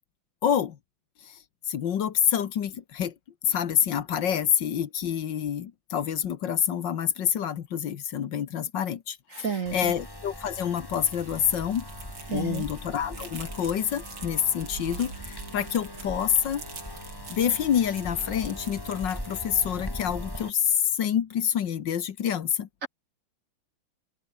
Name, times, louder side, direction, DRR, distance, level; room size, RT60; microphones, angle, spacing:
voice 1, 0.4-0.8 1.3-1.4 1.7-3.1 3.4-11.9 12.3-16.6 17.3-22.7, left 9 dB, 60° left, 1.8 m, -27 dB
voice 2, 9.3-9.9 12.3-12.6 22.8-22.9, right 6 dB, 45° right, 1.3 m, -31 dB
sound 1, 9.7-20.5, left 1 dB, 10° left, 4.4 m, -40 dB
sound 2, 10.6-19.9, right 4 dB, 70° right, 4.9 m, -44 dB
open air
omnidirectional pair, 2.3 m